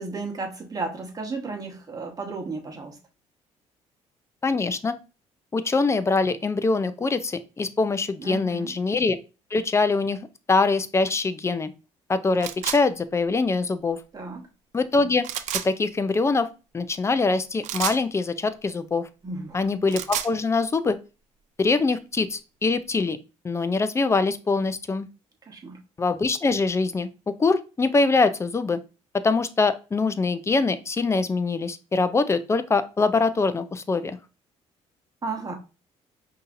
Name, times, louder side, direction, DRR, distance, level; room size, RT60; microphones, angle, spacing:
voice 1, 0.0-3.0 8.2-8.7 14.1-14.5 19.2-19.7 25.5-25.8 35.2-35.5, right 3 dB, 30° right, 1.2 m, -33 dB
voice 2, 4.4-4.9 5.5-9.2 9.5-11.7 12.1-14.0 14.7-15.3 15.6-16.5 16.7-19.1 19.5-21.0 21.6-23.2 23.4-25.1 26.0-27.1 27.4-28.8 29.1-34.2, left 3 dB, 20° left, 0.4 m, -23 dB
sound 1, 12.4-12.8 15.2-15.7 17.6-18.0 19.7-20.3, right 11 dB, 75° right, 0.4 m, -29 dB
5.4 x 2.8 x 2.5 m
cardioid pair, 95°, 12 cm